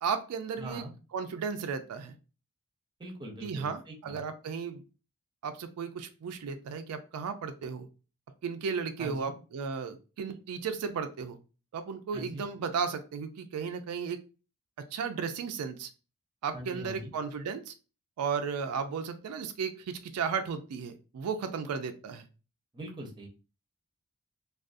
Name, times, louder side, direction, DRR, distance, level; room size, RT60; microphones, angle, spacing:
voice 1, 0.0-0.8 1.1-2.1 3.4-4.8 5.4-7.9 8.4-11.4 11.7-14.2 14.8-15.9 16.4-17.7 18.2-22.3, right 6 dB, 80° right, 7 dB, 0.3 m, -34 dB
voice 2, 0.6-0.9 3.0-4.2 9.0-9.3 12.1-12.4 16.5-17.1 22.7-23.3, right 1 dB, 20° right, 1 dB, 0.6 m, -42 dB
2.4 x 2.3 x 2.4 m, 0.33 s
head